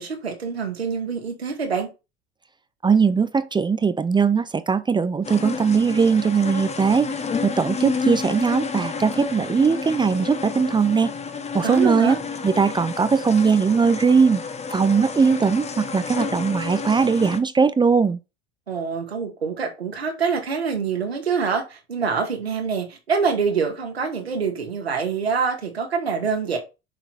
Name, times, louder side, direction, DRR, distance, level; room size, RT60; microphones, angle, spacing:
voice 1, 0.0-1.9 11.6-12.2 18.7-26.6, right 5 dB, 85° right, 2.3 m, -25 dB
voice 2, 2.8-7.1 7.4-11.1 11.5-12.2 12.4-14.4 14.7-18.2, right 5 dB, 15° right, 0.6 m, -20 dB
sound 1, 5.2-17.4, left 5 dB, 20° left, 1.2 m, -30 dB
6.7 x 6.0 x 4.2 m
figure-of-eight pair, 75°, 30 cm